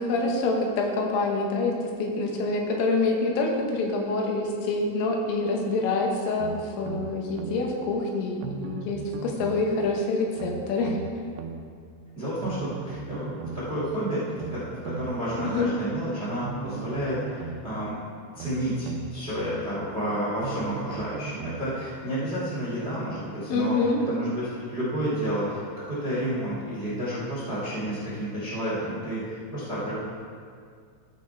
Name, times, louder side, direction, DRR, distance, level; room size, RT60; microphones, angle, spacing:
voice 1, 0.0-1.7 2.0-11.0 15.5-15.7 23.5-24.0, left 3 dB, 85° left, 0 dB, 3.7 m, -26 dB
sound 1, 6.4-7.6 8.4-9.7 10.4-11.6 12.4-13.7 14.4-15.6 16.4-17.7 18.4-19.6 20.4-21.7 22.4-22.5, right 6 dB, 90° right, 2.4 m, -37 dB
voice 2, 12.1-14.2 14.5-18.0 18.3-23.8 24.1-29.9, equal, 30° right, -8 dB, 1.1 m, -30 dB
14.5 x 5.3 x 4.6 m, 2.1 s
omnidirectional pair, 5.6 m